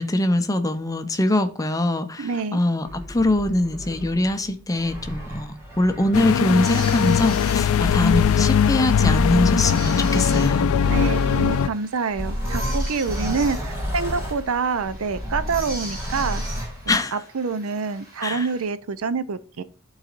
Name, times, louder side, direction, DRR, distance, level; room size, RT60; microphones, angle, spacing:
voice 1, 0.0-10.7 16.9-17.2 18.2-18.5, left 1 dB, 15° left, 0.6 m, -23 dB
voice 2, 2.2-2.6 10.9-16.4 16.9-19.6, right 5 dB, 80° right, 0.5 m, -27 dB
sound 1, 2.8-11.7 12.1-16.9, equal, 15° right, 1.7 m, -32 dB
sound 2, 6.1-11.7, left 7 dB, 75° left, 0.3 m, -20 dB
sound 3, 6.6-18.6, right 1 dB, 45° right, 3.3 m, -41 dB
12.0 x 4.0 x 2.5 m
head